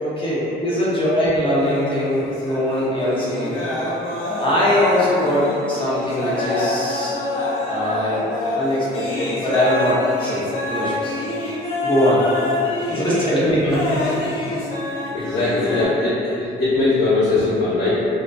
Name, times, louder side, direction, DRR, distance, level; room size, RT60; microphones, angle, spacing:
voice 1, 0.0-3.5 4.4-7.2 7.7-8.2 8.5-11.2 11.8-12.2 12.9-14.0, left 1 dB, 25° left, -9 dB, 0.7 m, -21 dB
sound 1, 1.6-15.8, left 2 dB, 85° left, 0.6 m, -26 dB
voice 2, 15.1-18.1, left 2 dB, 60° left, -16 dB, 0.9 m, -20 dB
2.6 x 2.4 x 2.2 m, 2.8 s
cardioid pair, 90°, 20 cm